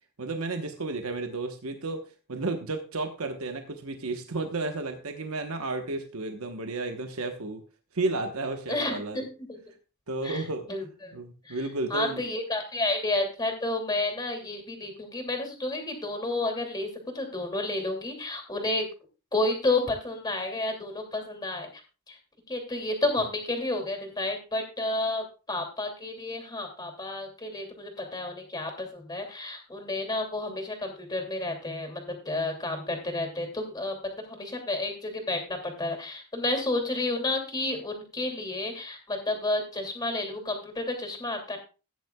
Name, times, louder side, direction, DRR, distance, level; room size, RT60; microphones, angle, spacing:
voice 1, 0.2-7.6 7.9-9.2 10.1-10.7 11.1-12.2, right 3 dB, 70° right, 5 dB, 1.1 m, -32 dB
voice 2, 8.7-9.6 10.2-11.2 11.4-11.6 11.9-18.9 19.3-21.7 22.1-22.2 22.5-41.6, left 2 dB, 20° left, 4 dB, 2.6 m, -31 dB
16.5 x 9.5 x 2.3 m, 0.33 s
head